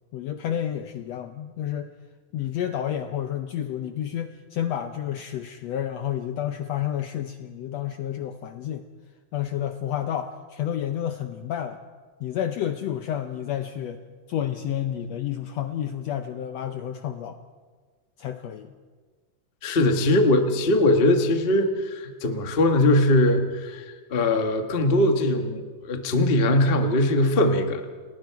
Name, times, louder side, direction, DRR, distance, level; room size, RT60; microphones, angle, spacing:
voice 1, 0.1-1.9 2.3-8.9 9.3-11.8 12.2-14.0 14.3-17.4 18.2-18.7, left 10 dB, 75° left, 8 dB, 1.5 m, -30 dB
voice 2, 19.6-27.8, left 1 dB, 60° left, 5 dB, 0.5 m, -21 dB
30.0 x 20.0 x 4.7 m, 1.5 s
omnidirectional pair, 3.8 m